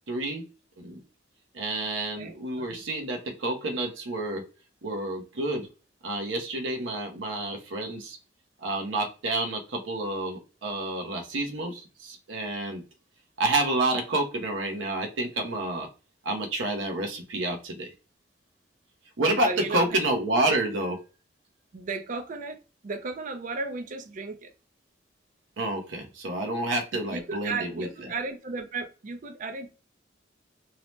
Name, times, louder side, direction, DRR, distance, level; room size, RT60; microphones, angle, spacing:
voice 1, 0.1-0.4 0.8-1.0 1.5-4.4 4.8-5.7 6.0-8.2 8.6-12.8 13.4-15.9 16.2-17.9 19.2-21.0 25.6-27.9, right 2 dB, 75° right, 0.7 m, -29 dB
voice 2, 2.2-2.8 19.4-20.2 20.5-20.6 21.7-24.5 27.1-29.7, right 3 dB, 45° right, 0.4 m, -35 dB
2.7 x 2.0 x 3.1 m
head